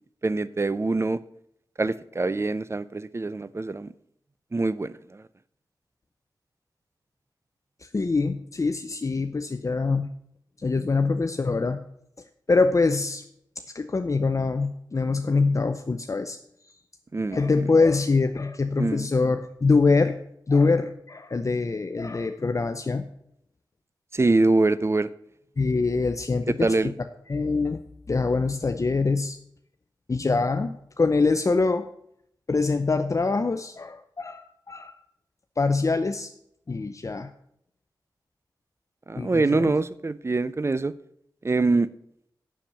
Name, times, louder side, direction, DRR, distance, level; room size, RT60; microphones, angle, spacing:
voice 1, 0.2-1.2 1.8-3.9 4.5-5.2 17.1-17.4 18.8-19.1 24.1-25.1 26.5-26.9 39.1-40.9 41.4-41.9, right 3 dB, 35° right, 17 dB, 0.5 m, -24 dB
voice 2, 7.8-10.1 10.6-11.8 12.5-13.2 13.7-16.4 17.3-20.2 20.5-23.1 25.6-26.9 27.3-27.8 28.1-29.4 30.1-31.8 32.5-35.0 35.6-36.3 36.7-37.3 39.2-39.7, left 3 dB, 40° left, 7 dB, 0.6 m, -24 dB
7.4 x 7.2 x 6.6 m, 0.72 s
cardioid pair, 50°, 8 cm